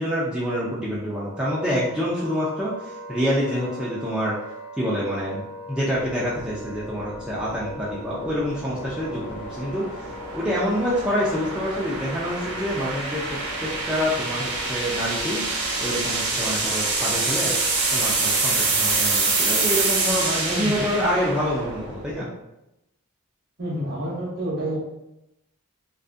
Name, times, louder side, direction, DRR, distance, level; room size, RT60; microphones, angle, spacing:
voice 1, 0.0-4.4 4.8-9.8 10.3-13.2 13.6-15.4 15.8-17.5 17.9-22.3, equal, 5° right, -8 dB, 0.3 m, -27 dB
Wind instrument woodwind instrument, 1.1-20.3, left 1 dB, 75° left, 1.0 m, -41 dB
sound 1, 6.0-22.2, right 3 dB, 85° right, 0.6 m, -27 dB
voice 2, 20.5-21.4 23.6-24.8, right 1 dB, 45° right, -4 dB, 0.8 m, -30 dB
2.5 x 2.4 x 2.5 m, 0.88 s
head